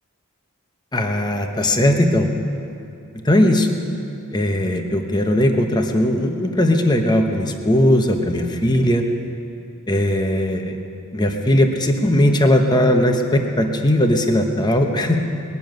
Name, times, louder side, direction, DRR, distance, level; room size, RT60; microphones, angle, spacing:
voice 1, 0.9-2.3 3.2-3.7 4.3-9.0 9.9-10.8 11.1-15.2, left 1 dB, 20° left, 4 dB, 1.0 m, -18 dB
20.5 x 7.0 x 9.3 m, 2.6 s
head